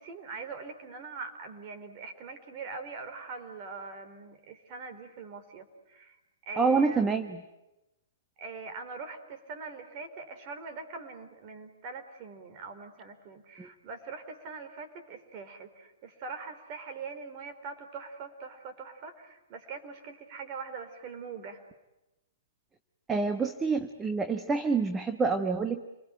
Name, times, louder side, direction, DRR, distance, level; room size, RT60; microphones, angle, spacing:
voice 1, 0.0-6.2 6.5-7.1 8.4-21.6 23.4-23.5, right 4 dB, 40° right, 8 dB, 4.4 m, -42 dB
voice 2, 6.6-7.4 13.6-13.7 23.1-25.8, right 4 dB, 15° right, 8 dB, 1.4 m, -27 dB
29.5 x 21.5 x 9.1 m, 0.97 s
hypercardioid pair, 130°, 0 cm